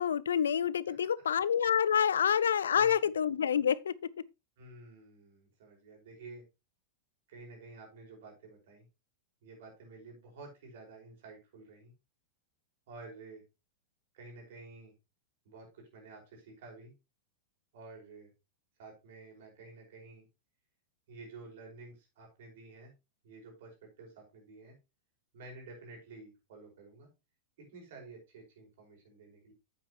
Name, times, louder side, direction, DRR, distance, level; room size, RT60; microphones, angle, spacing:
voice 1, 0.0-3.9, left 8 dB, 75° left, 0.4 m, -27 dB
voice 2, 2.7-3.1 4.6-6.4 7.3-8.9 9.4-11.9 12.9-13.4 14.1-14.9 15.4-16.9 17.7-18.3 18.8-20.2 21.1-22.9 23.2-24.7 25.3-27.1 27.6-29.5, right 3 dB, 60° right, 5.2 m, -51 dB
8.8 x 8.6 x 3.1 m
figure-of-eight pair, 95°, 0 cm